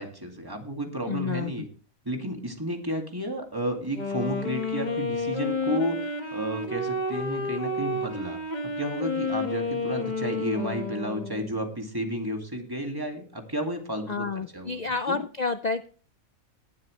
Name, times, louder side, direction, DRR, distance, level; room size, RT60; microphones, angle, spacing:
voice 1, 0.0-1.7 2.0-8.4 8.8-15.2, equal, 15° right, 3 dB, 2.2 m, -32 dB
voice 2, 1.1-1.5 14.1-15.9, left 4 dB, 75° left, 9 dB, 0.4 m, -29 dB
Wind instrument woodwind instrument, 3.8-11.6, left 2 dB, 30° left, 1.7 m, -30 dB
19.0 x 7.6 x 3.2 m, 0.39 s
omnidirectional pair, 1.5 m